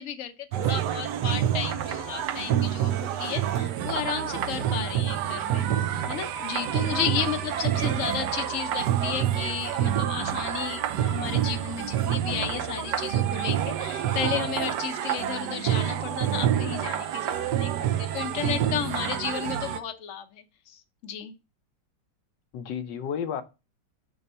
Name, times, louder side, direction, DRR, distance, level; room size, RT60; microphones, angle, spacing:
voice 1, 0.0-5.7 6.1-21.3, left 9 dB, 55° left, 0.9 m, -33 dB
sound 1, 0.5-19.8, right 10 dB, 70° right, 1.2 m, -27 dB
voice 2, 22.5-23.4, left 7 dB, 75° left, 1.3 m, -32 dB
6.0 x 3.9 x 5.4 m
omnidirectional pair, 2.0 m